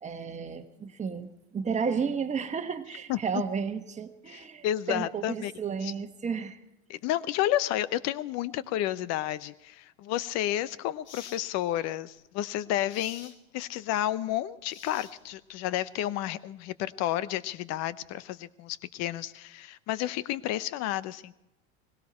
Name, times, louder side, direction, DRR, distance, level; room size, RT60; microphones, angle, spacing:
voice 1, 0.0-6.6, right 6 dB, 20° right, 6 dB, 1.5 m, -33 dB
voice 2, 4.3-5.9 6.9-21.3, left 13 dB, 50° left, 18 dB, 0.8 m, -31 dB
sound 1, 10.2-10.3 11.0-11.4 12.9-13.4 14.7-15.4, left 6 dB, 80° left, 2.1 m, -48 dB
19.0 x 17.0 x 4.3 m, 0.89 s
hypercardioid pair, 105°, 34 cm